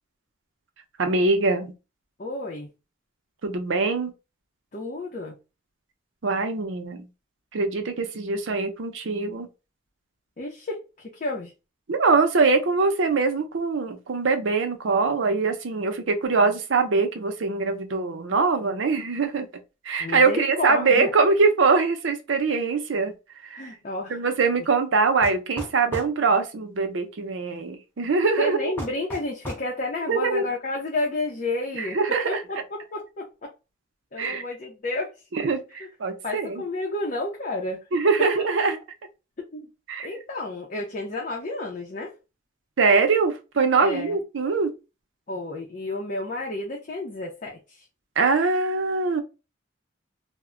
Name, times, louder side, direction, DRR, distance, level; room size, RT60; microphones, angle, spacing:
voice 1, 1.0-1.7 3.4-4.1 6.2-7.1 7.5-9.5 11.9-19.5 19.8-23.1 23.4-23.7 24.1-28.7 30.1-30.5 31.8-32.4 34.2-34.4 35.3-36.6 37.9-38.8 39.9-40.1 42.8-44.7 48.2-49.2, right 4 dB, 75° right, 0.6 m, -23 dB
voice 2, 2.2-2.7 4.7-5.4 10.4-11.5 20.0-21.1 23.6-24.2 28.4-32.0 32.2-33.5 34.1-35.1 35.7-35.9 36.2-37.8 39.5-39.7 40.0-42.1 43.8-44.2 45.3-47.9, left 2 dB, 40° left, 0.5 m, -31 dB
sound 1, 25.2-26.2 28.8-29.7, equal, 10° left, 0.8 m, -35 dB
2.1 x 2.1 x 3.6 m
head